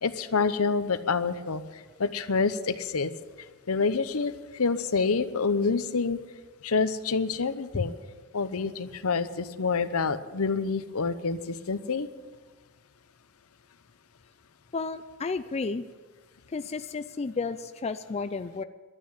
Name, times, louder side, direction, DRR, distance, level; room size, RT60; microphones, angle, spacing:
voice 1, 0.0-1.6 2.0-3.1 3.7-6.2 6.6-7.9 8.3-12.1, left 4 dB, 75° left, 12 dB, 0.8 m, -27 dB
voice 2, 14.7-15.9 16.5-18.6, left 4 dB, 30° left, 10 dB, 0.4 m, -32 dB
12.0 x 9.6 x 9.4 m, 1.4 s
head